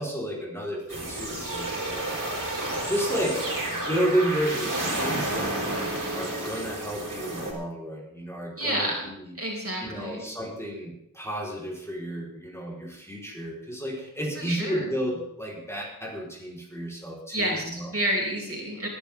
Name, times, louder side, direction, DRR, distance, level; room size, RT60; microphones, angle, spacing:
voice 1, 0.0-2.3 2.9-9.4 9.8-17.9, right 1 dB, 10° left, -3 dB, 4.2 m, -32 dB
sound 1, 0.9-7.5, right 1 dB, 65° right, 4.5 m, -31 dB
voice 2, 8.6-9.1 9.4-10.2 14.4-14.9 17.3-18.9, right 1 dB, 40° right, -2 dB, 4.8 m, -29 dB
20.0 x 11.5 x 3.6 m, 0.75 s
wide cardioid pair, 50°, 34 cm